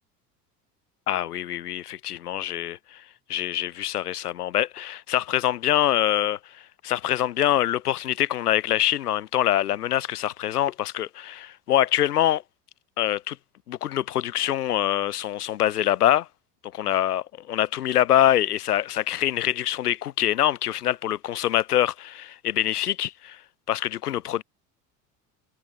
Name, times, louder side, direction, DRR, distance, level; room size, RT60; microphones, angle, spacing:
voice 1, 1.1-3.0 3.3-6.4 6.8-12.4 13.0-13.4 13.7-16.3 16.7-23.4 23.7-24.4, left 12 dB, 70° left, 5.8 m, -24 dB
figure-of-eight pair, 70°, 47 cm